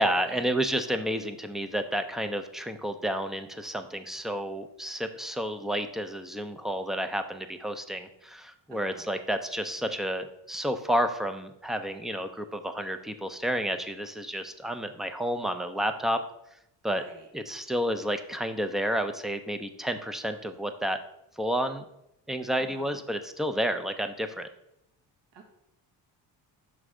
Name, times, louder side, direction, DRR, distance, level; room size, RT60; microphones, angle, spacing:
voice 1, 0.0-16.2 16.8-17.0 17.3-21.0 21.4-21.9 22.3-24.5, equal, ahead, 8 dB, 0.4 m, -30 dB
voice 2, 8.7-9.1 16.9-17.3 22.6-23.0 25.3-25.5, right 4 dB, 60° right, 3 dB, 1.3 m, -49 dB
6.3 x 3.3 x 4.8 m, 0.82 s
cardioid pair, 85°, 47 cm